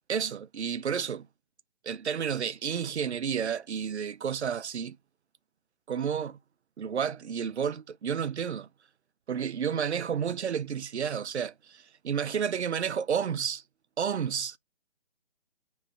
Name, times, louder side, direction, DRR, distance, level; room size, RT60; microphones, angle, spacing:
voice 1, 0.1-1.3 1.8-5.0 5.9-6.4 6.8-8.7 9.3-13.6 14.0-14.6, right 7 dB, 80° right, 0.5 m, -31 dB
3.2 x 3.1 x 4.6 m
figure-of-eight pair, 145°, 33 cm